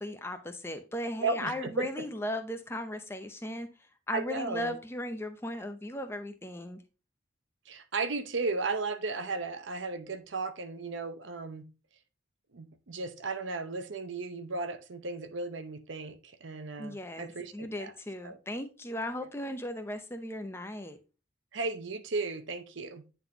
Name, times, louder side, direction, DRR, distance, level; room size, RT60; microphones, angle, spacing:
voice 1, 0.0-3.7 4.1-6.8 16.8-21.0, left 1 dB, 10° left, 0.7 m, -37 dB
voice 2, 1.2-2.1 4.1-4.8 7.7-11.7 12.5-17.9 18.2-18.4 21.5-23.0, right 3 dB, 75° right, 0.8 m, -35 dB
9.4 x 4.1 x 2.9 m
head